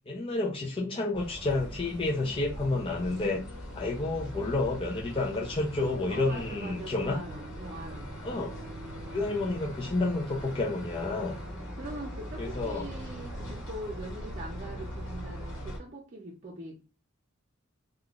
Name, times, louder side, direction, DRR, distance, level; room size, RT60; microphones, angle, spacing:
voice 1, 0.1-3.4 3.8-7.2 8.2-8.5 9.1-11.4 12.4-12.9, left 2 dB, 25° left, -2 dB, 0.5 m, -30 dB
sound 1, 1.1-15.8, equal, 65° left, 1.2 m, -41 dB
voice 2, 6.1-8.2 11.8-16.8, right 1 dB, 35° right, -3 dB, 0.6 m, -42 dB
3.5 x 2.3 x 2.4 m, 0.35 s
head